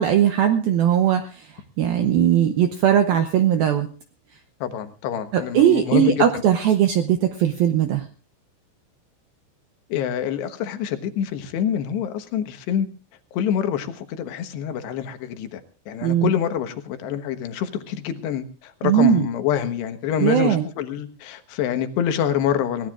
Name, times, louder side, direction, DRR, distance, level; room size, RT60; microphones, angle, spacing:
voice 1, 0.0-1.5 1.8-3.9 5.3-8.0 16.0-16.3 18.8-19.3 20.2-20.6, right 10 dB, 85° right, 7 dB, 2.1 m, -19 dB
voice 2, 4.6-6.4 9.9-12.9 13.3-15.6 15.9-22.9, left 9 dB, 70° left, 8 dB, 3.1 m, -26 dB
22.0 x 18.5 x 2.4 m, 0.36 s
omnidirectional pair, 5.6 m